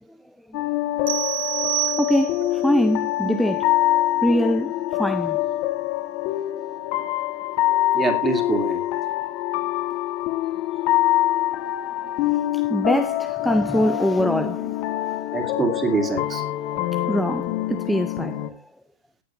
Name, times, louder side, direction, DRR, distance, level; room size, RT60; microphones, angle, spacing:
sound 1, 0.5-18.5, left 14 dB, 40° left, 1.5 m, -25 dB
sound 2, 1.1-2.6, right 19 dB, 60° right, 1.0 m, -27 dB
voice 1, 2.0-3.7 4.2-4.7 5.0-5.4 12.5-14.8 16.9-18.7, equal, ahead, 0.5 m, -23 dB
voice 2, 7.9-8.8 15.3-16.4, right 3 dB, 15° right, 2.4 m, -24 dB
18.0 x 7.5 x 2.5 m
supercardioid pair, 155°, 0 cm